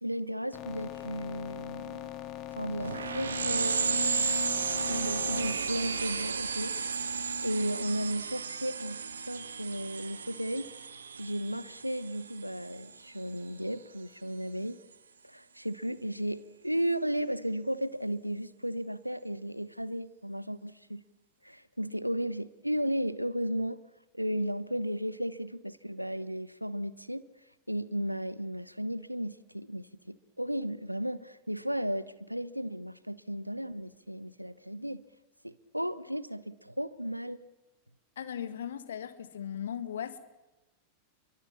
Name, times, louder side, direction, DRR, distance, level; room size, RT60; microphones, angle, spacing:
voice 1, 0.0-2.1 2.6-4.3 4.9-6.7 7.4-10.7 11.2-14.8 15.2-21.0 21.4-23.9 24.1-27.2 27.7-35.0 35.4-37.4, equal, 90° right, 1.0 m, -34 dB
sound 1, 0.5-5.5, left 12 dB, 35° left, 3.0 m, -41 dB
sound 2, 2.8-12.9, right 5 dB, 70° right, 1.5 m, -33 dB
voice 2, 38.2-40.2, left 9 dB, 65° left, 1.9 m, -38 dB
29.5 x 23.0 x 7.3 m
figure-of-eight pair, 90°, 0 cm